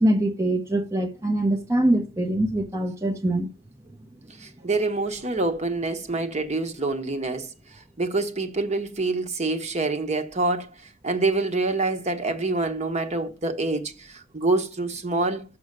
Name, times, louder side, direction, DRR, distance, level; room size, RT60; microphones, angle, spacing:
voice 1, 0.0-3.5, right 1 dB, 15° right, 0.8 m, -23 dB
voice 2, 4.4-7.5 8.0-10.7 11.0-15.4, right 3 dB, 35° right, 1.1 m, -26 dB
6.6 x 6.3 x 7.4 m
head